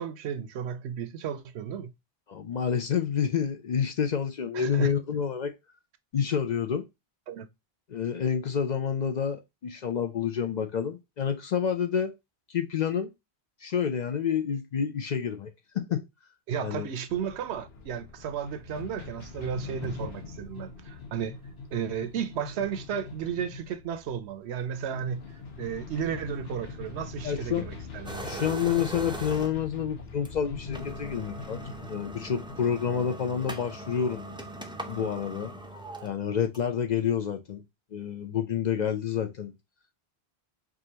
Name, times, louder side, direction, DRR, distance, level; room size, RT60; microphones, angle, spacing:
voice 1, 0.0-1.9 4.5-4.9 7.3-7.5 16.5-21.4 21.7-25.3 25.6-28.5, right 8 dB, 85° right, 0.9 m, -34 dB
voice 2, 2.3-5.5 6.1-6.9 7.9-12.1 12.5-13.1 13.6-16.0 16.6-16.9 27.2-27.7 28.2-31.6 31.9-34.2 34.9-35.5 36.0-37.6 37.9-39.5, left 7 dB, 55° left, 0.5 m, -28 dB
sound 1, 17.1-34.6, left 4 dB, 70° left, 1.2 m, -42 dB
sound 2, 28.0-29.7 30.2-30.3 30.6-36.8, right 1 dB, 10° right, 0.3 m, -40 dB
4.8 x 2.5 x 2.8 m
omnidirectional pair, 1.1 m